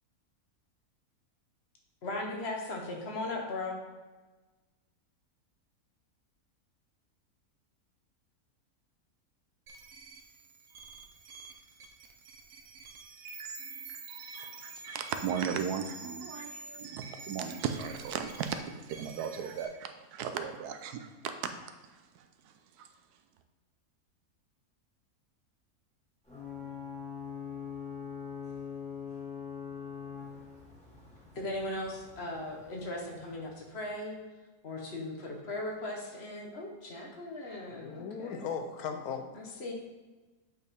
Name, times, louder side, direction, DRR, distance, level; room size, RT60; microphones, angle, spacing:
voice 1, 2.0-3.8 31.3-34.1 34.6-38.5 39.3-39.7, left 2 dB, 45° left, 0 dB, 1.2 m, -38 dB
sound 1, 9.7-19.7, right 4 dB, 60° right, 1.0 m, -47 dB
voice 2, 14.3-21.7 22.1-22.9, right 7 dB, 85° right, 7 dB, 1.1 m, -37 dB
Ocean / Boat Water vehicle / Alarm, 26.2-33.8, left 6 dB, 5° left, 1.5 m, -43 dB
voice 3, 37.7-39.3, left 6 dB, 80° left, 6 dB, 1.1 m, -37 dB
8.1 x 4.2 x 3.5 m, 1.2 s
omnidirectional pair, 1.6 m